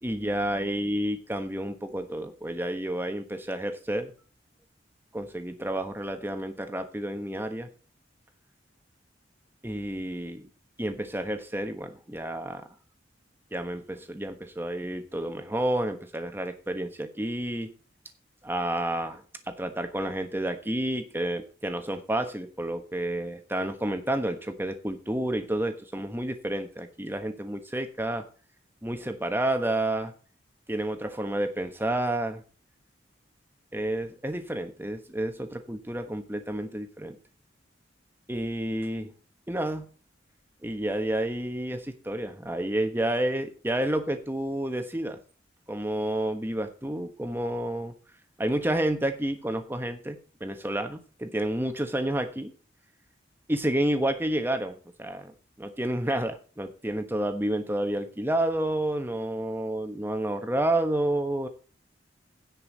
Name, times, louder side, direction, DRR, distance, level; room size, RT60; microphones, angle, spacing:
voice 1, 0.0-4.1 5.1-7.7 9.6-10.5 10.8-12.6 13.5-17.7 18.4-28.2 28.8-30.1 30.7-32.4 33.7-37.2 38.3-39.1 39.5-39.9 40.6-45.2 45.7-47.9 48.4-52.5 53.5-61.5, right 1 dB, 10° right, 7 dB, 1.3 m, -30 dB
16.5 x 5.5 x 4.1 m, 0.38 s
head